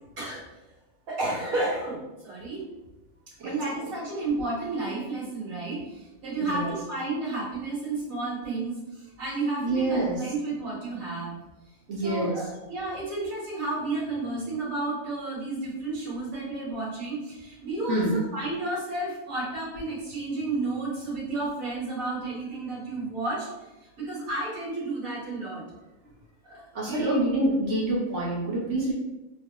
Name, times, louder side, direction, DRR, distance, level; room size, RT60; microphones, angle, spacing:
voice 1, 1.1-2.7 3.4-11.4 12.0-23.5 24.0-25.6 26.4-27.2, right 2 dB, 80° right, -7 dB, 1.8 m, -32 dB
voice 2, 6.4-6.7 9.6-10.2 11.9-12.4 17.9-18.2 26.7-28.9, right 1 dB, 60° right, -5 dB, 1.2 m, -26 dB
3.2 x 2.2 x 2.9 m, 0.99 s
omnidirectional pair, 1.4 m